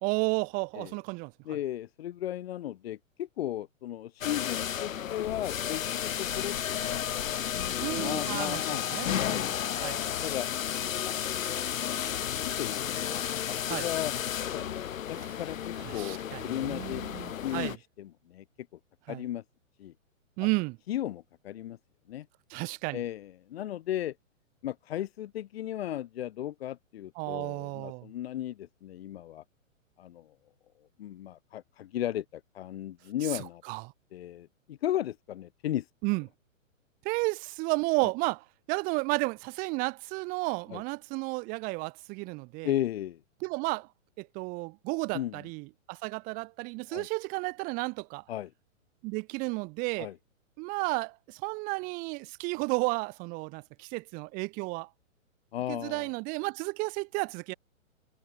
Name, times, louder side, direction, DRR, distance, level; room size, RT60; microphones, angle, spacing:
voice 1, 0.0-1.3 7.8-8.6 8.9-9.4 9.8-10.0 13.7-13.9 15.8-17.7 19.1-19.2 20.4-20.8 22.5-23.0 27.2-28.1 33.3-33.9 36.0-36.2 37.0-42.7 43.4-43.9 44.2-48.2 49.0-50.1 50.6-54.9 55.7-57.5, right 28 dB, 20° right, 1.3 m, -32 dB
voice 2, 1.5-7.4 8.0-9.5 10.0-10.5 11.0-11.6 12.0-17.1 17.4-18.4 18.7-18.8 19.1-19.4 19.8-19.9 20.4-20.5 20.9-21.8 22.1-22.3 22.9-24.2 24.6-29.4 30.0-30.3 31.0-33.6 34.1-35.9 38.0-38.1 40.7-40.8 42.6-43.2 45.1-45.4 46.9-47.1 48.3-48.5 50.0-50.2 55.5-56.1, left 12 dB, 50° left, 2.1 m, -36 dB
sound 1, 4.2-17.8, left 10 dB, 75° left, 1.3 m, -33 dB
hypercardioid pair, 160°, 40 cm